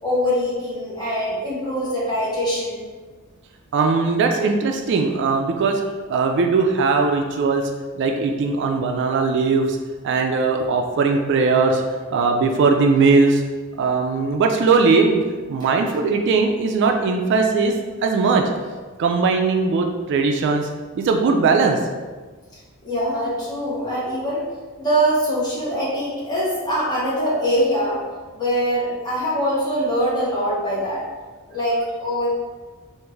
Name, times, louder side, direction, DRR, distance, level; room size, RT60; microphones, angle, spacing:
voice 1, 0.0-2.8 22.8-24.4 24.8-28.0 28.3-31.0 31.5-32.3, equal, 20° left, -8 dB, 1.1 m, -23 dB
voice 2, 3.7-5.8 6.1-7.6 7.9-9.8 10.0-11.8 12.1-13.4 13.8-15.2 15.5-17.7 18.0-18.4 19.0-20.7 20.9-21.8, right 4 dB, 55° right, 3 dB, 0.3 m, -19 dB
3.5 x 2.5 x 3.1 m, 1.4 s
head